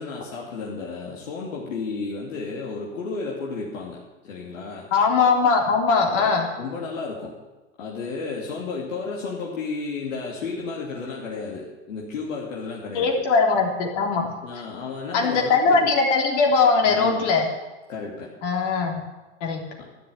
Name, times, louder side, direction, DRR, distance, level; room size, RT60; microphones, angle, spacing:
voice 1, 0.0-4.9 6.1-6.3 6.6-7.3 7.8-13.2 14.4-15.9 16.9-17.3 17.9-18.3 19.8-19.9, left 4 dB, 85° left, -3 dB, 3.0 m, -33 dB
voice 2, 4.9-6.5 12.9-14.3 15.1-17.5 18.4-19.0 19.4-19.6, left 4 dB, 65° left, 1 dB, 3.4 m, -20 dB
12.5 x 10.5 x 8.3 m, 1.1 s
hypercardioid pair, 110°, 38 cm